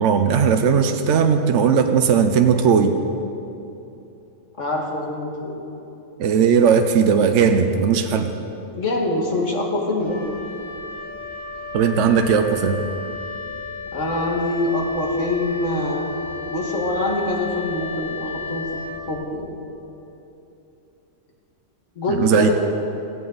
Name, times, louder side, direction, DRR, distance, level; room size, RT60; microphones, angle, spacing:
voice 1, 0.0-3.0 6.2-8.3 11.7-12.8 22.1-22.5, right 6 dB, 70° right, 6 dB, 1.0 m, -17 dB
voice 2, 4.6-5.6 8.7-10.2 13.9-16.1 16.5-18.8 19.1-19.5 22.0-22.5, left 2 dB, 75° left, -1 dB, 2.4 m, -24 dB
Wind instrument woodwind instrument, 10.0-19.5, left 3 dB, 5° right, 3.3 m, -33 dB
17.0 x 15.5 x 4.0 m, 2.9 s
omnidirectional pair, 1.3 m